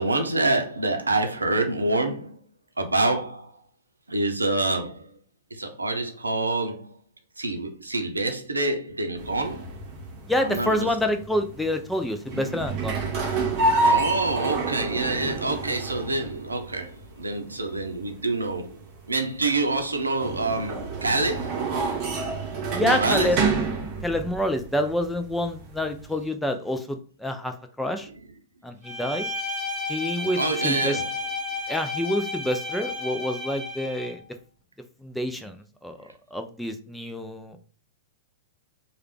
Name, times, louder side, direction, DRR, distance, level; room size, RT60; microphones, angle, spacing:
voice 1, 0.0-2.4 2.8-3.5 4.1-5.0 5.5-6.9 7.4-9.7 10.4-10.9 13.8-18.8 19.1-21.5 22.8-23.4 30.2-31.0, right 2 dB, 85° right, 0.6 m, -26 dB
sound 1, 9.2-26.2, right 3 dB, 40° right, 0.9 m, -29 dB
voice 2, 10.3-13.0 22.7-23.4 24.0-28.1 28.6-29.3 29.9-31.0 31.7-34.2 35.0-37.6, left 1 dB, 5° left, 0.4 m, -27 dB
Bowed string instrument, 28.8-34.2, left 2 dB, 15° right, 1.2 m, -32 dB
3.2 x 2.3 x 3.2 m
figure-of-eight pair, 105°, 0 cm